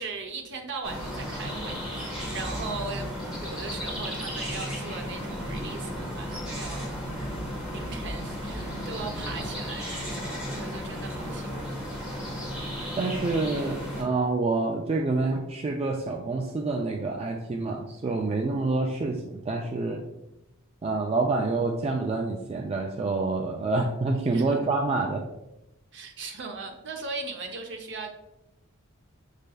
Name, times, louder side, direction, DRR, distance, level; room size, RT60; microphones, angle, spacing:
voice 1, 0.0-6.9 7.7-11.7 24.3-24.6 25.9-28.1, right 4 dB, 55° right, 3 dB, 0.7 m, -38 dB
sound 1, 0.8-14.0, equal, 5° right, 1.2 m, -34 dB
voice 2, 13.0-20.0 20.8-25.2, right 3 dB, 30° right, 1 dB, 0.3 m, -27 dB
6.4 x 3.3 x 2.2 m, 0.91 s
head